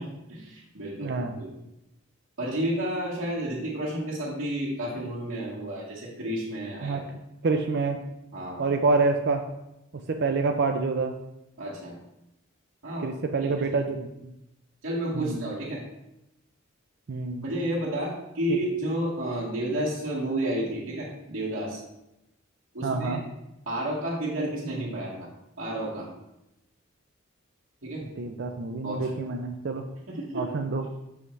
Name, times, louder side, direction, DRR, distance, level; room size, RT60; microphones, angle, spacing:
voice 1, 0.0-1.5 2.4-7.0 8.3-8.7 11.6-12.0 12.8-13.1 13.6-13.8 14.8-15.8 17.4-21.8 22.7-23.2 23.7-25.3 25.6-26.1 27.8-28.1 28.8-29.2 30.1-30.5, right 1 dB, 80° right, -8 dB, 1.9 m, -31 dB
voice 2, 1.0-1.4 6.8-7.0 7.4-8.0 8.6-9.4 10.1-11.1 13.0-14.1 15.1-15.5 17.1-17.4 18.5-18.6 22.8-23.2 28.2-29.8 30.3-30.8, right 3 dB, 55° right, 5 dB, 0.5 m, -27 dB
7.5 x 5.6 x 3.2 m, 0.89 s
head